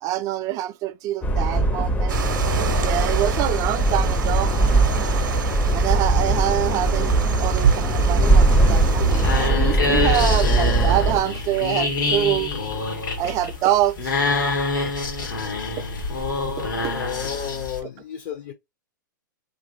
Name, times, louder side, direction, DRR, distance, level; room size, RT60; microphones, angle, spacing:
voice 1, 0.0-2.2 2.8-4.5 5.7-12.5 13.2-14.1 15.8-15.9 16.6-16.9, right 13 dB, 30° right, 0.3 m, -25 dB
sound 1, 1.2-11.2, right 1 dB, 15° left, 0.5 m, -20 dB
sound 2, 2.1-9.5, right 7 dB, 70° right, 0.6 m, -27 dB
sound 3, 8.7-17.8, left 3 dB, 80° left, 1.3 m, -26 dB
voice 2, 16.9-18.5, left 9 dB, 50° left, 0.7 m, -32 dB
2.9 x 2.5 x 2.6 m
hypercardioid pair, 115°, 11 cm